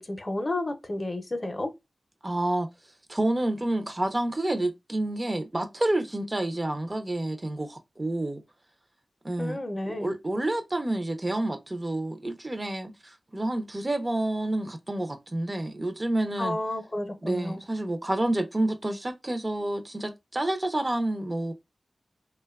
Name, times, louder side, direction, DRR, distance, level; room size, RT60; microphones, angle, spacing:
voice 1, 0.0-1.7 9.4-10.1 16.4-17.6, left 1 dB, 40° left, 0.5 m, -31 dB
voice 2, 2.2-2.7 3.1-8.4 9.2-9.6 9.9-16.6 17.2-21.5, right 1 dB, 30° right, 0.4 m, -29 dB
2.7 x 2.1 x 2.2 m
cardioid pair, 55°, 0 cm